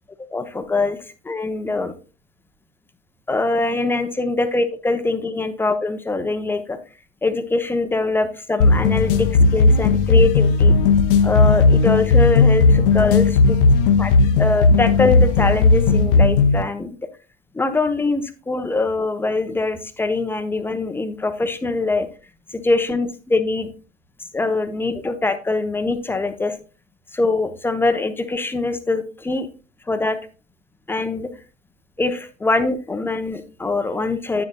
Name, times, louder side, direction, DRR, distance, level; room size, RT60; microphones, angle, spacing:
voice 1, 0.3-1.0 1.2-1.9 3.3-6.8 7.2-10.8 11.2-13.3 14.0-14.1 14.4-17.0 17.5-22.1 22.5-23.7 24.3-26.5 27.1-29.5 29.9-30.2 30.9-31.3 32.0-34.5, left 3 dB, 5° left, 9 dB, 0.6 m, -23 dB
sound 1, 8.6-16.6, left 3 dB, 50° left, 0.8 m, -15 dB
9.6 x 9.2 x 2.2 m, 0.33 s
figure-of-eight pair, 90°, 35 cm